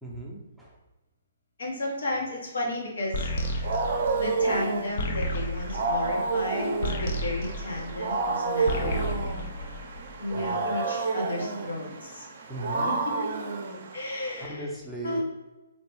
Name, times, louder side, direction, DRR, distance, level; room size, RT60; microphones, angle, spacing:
voice 1, 0.0-0.8 10.3-10.7 12.5-13.0 14.5-15.2, right 1 dB, ahead, -5 dB, 0.6 m, -38 dB
voice 2, 1.6-3.3 4.2-9.0 10.2-12.3 12.8-13.2 13.9-14.7 15.0-15.2, left 1 dB, 75° left, -3 dB, 1.2 m, -33 dB
sound 1, 3.1-8.3 8.6-10.3, left 1 dB, 50° left, 0.5 m, -32 dB
Wild animals, 3.2-14.5, right 3 dB, 50° right, 0.5 m, -30 dB
3.0 x 2.9 x 3.1 m, 1.1 s
hypercardioid pair, 140°, 0 cm